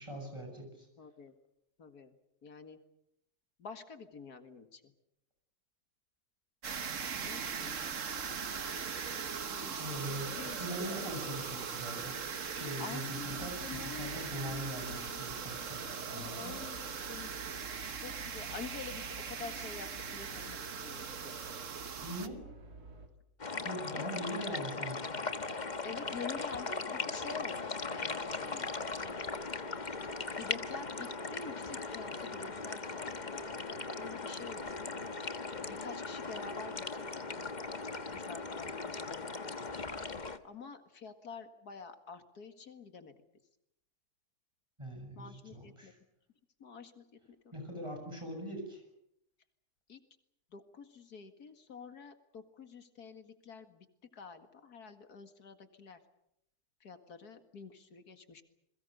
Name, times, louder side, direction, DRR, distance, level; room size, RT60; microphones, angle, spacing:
voice 1, 0.0-0.9 9.8-15.9 16.1-16.5 22.0-22.5 23.6-25.2 44.8-46.0 47.5-48.8, equal, 20° right, 3 dB, 8.0 m, -42 dB
voice 2, 1.0-1.3 1.8-2.1 2.4-2.8 3.6-4.9 7.2-7.8 9.5-11.2 12.8-15.3 16.1-17.3 17.9-21.4 23.9-24.2 25.8-28.7 30.4-35.0 35.6-37.7 38.1-39.6 40.4-43.1 45.2-45.9 46.6-47.1 49.9-50.0 50.5-53.9 54.1-56.0 56.8-58.4, left 5 dB, 85° left, 8 dB, 2.4 m, -48 dB
sound 1, 6.6-22.3, right 6 dB, 55° right, 1.6 m, -40 dB
sound 2, 13.3-23.1, right 2 dB, 85° right, 3.6 m, -52 dB
sound 3, 23.4-40.4, left 3 dB, 30° left, 1.3 m, -39 dB
28.5 x 22.0 x 6.7 m, 0.78 s
omnidirectional pair, 1.6 m